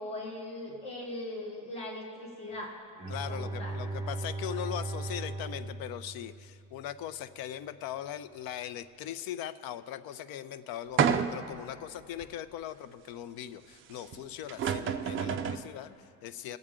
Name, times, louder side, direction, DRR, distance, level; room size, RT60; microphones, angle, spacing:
voice 1, 0.0-2.8 3.3-3.8, left 1 dB, 15° left, -3 dB, 1.4 m, -40 dB
Bowed string instrument, 3.0-6.9, right 2 dB, 15° right, 0.9 m, -38 dB
voice 2, 3.1-16.6, left 11 dB, 65° left, 13 dB, 0.6 m, -40 dB
sound 1, 11.0-11.6 12.2-12.3 14.1-14.2 14.5-15.7, right 7 dB, 35° right, 0.4 m, -29 dB
23.0 x 7.9 x 3.7 m, 2.4 s
cardioid pair, 165°, 38 cm